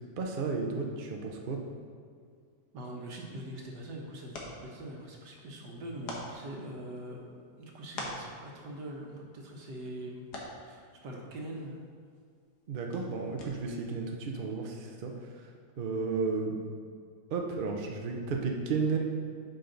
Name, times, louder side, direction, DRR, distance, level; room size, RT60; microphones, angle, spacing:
voice 1, 0.2-1.6 12.7-15.1 15.8-16.6 17.3-19.0, right 4 dB, 50° right, 1 dB, 0.6 m, -33 dB
voice 2, 2.7-7.3 7.6-10.3 10.6-11.8, right 1 dB, 70° right, 0 dB, 1.7 m, -43 dB
sound 1, 3.2-13.9, left 2 dB, 65° left, 1.7 m, -48 dB
9.0 x 5.2 x 3.9 m, 2.2 s
omnidirectional pair, 2.0 m